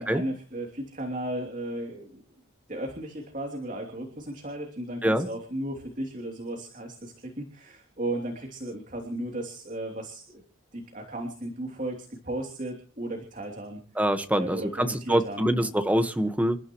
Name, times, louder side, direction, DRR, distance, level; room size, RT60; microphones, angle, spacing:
voice 1, 0.0-2.2 2.7-10.4 10.7-13.8 14.4-15.7, right 1 dB, 35° right, 2 dB, 3.1 m, -35 dB
voice 2, 13.9-16.6, equal, 5° right, 7 dB, 1.4 m, -25 dB
29.0 x 13.5 x 3.1 m, 0.43 s
head